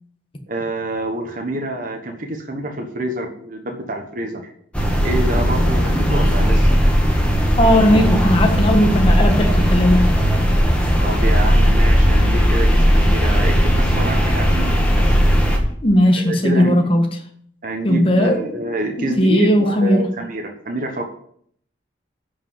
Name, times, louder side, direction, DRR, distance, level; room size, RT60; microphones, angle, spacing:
voice 1, 0.5-4.5 5.0-6.7 11.0-15.2 16.2-16.9 17.6-21.0, right 1 dB, 45° right, 3 dB, 1.3 m, -27 dB
sound 1, 4.7-15.6, equal, 5° left, 1.8 m, -16 dB
voice 2, 7.6-10.1 15.8-17.0 17.8-18.4 19.0-20.0, equal, 30° left, 3 dB, 1.5 m, -16 dB
11.0 x 5.4 x 7.2 m, 0.64 s
head